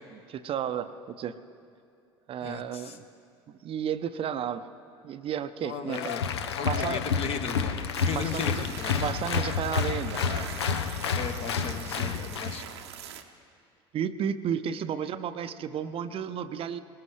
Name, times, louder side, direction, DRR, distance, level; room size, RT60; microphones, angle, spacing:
voice 1, 0.1-1.4 2.3-3.0 3.6-4.7 5.0-6.1 6.6-7.0 8.1-8.7 8.9-10.2 13.9-16.8, right 8 dB, 45° right, 11 dB, 0.6 m, -32 dB
voice 2, 2.4-3.0 5.6-6.2 6.5-8.9 11.1-12.7, left 6 dB, 45° left, 6 dB, 1.3 m, -36 dB
Applause, 5.9-12.6, left 6 dB, 80° left, 0.6 m, -30 dB
sound 1, 7.9-13.2, right 9 dB, 80° right, 0.9 m, -43 dB
20.5 x 17.5 x 3.3 m, 2.4 s
hypercardioid pair, 65°, 14 cm